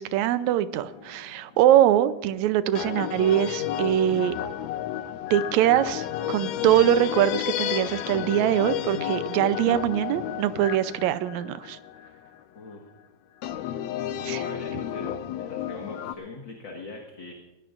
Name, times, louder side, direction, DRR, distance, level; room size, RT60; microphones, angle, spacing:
voice 1, 0.0-4.4 5.3-11.8 14.3-14.4, right 11 dB, 75° right, 13 dB, 1.8 m, -23 dB
sound 1, 0.9-1.4 2.8-12.4 13.4-16.1, left 11 dB, 80° left, 1.6 m, -32 dB
voice 2, 14.1-17.3, left 3 dB, 45° left, 0 dB, 1.8 m, -41 dB
21.0 x 17.0 x 2.5 m, 1.0 s
omnidirectional pair, 3.7 m